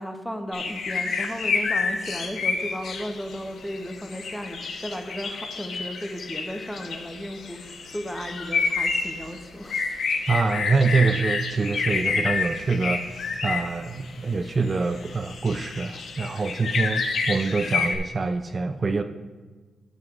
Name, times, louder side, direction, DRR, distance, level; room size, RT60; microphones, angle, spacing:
voice 1, 0.0-9.9, equal, 5° left, 5 dB, 0.8 m, -35 dB
sound 1, 0.5-14.1 14.4-18.0, left 4 dB, 65° left, 0.9 m, -29 dB
voice 2, 10.3-19.0, right 4 dB, 35° right, 7 dB, 0.4 m, -25 dB
12.5 x 7.7 x 2.5 m, 1.4 s
cardioid pair, 100°, 0 cm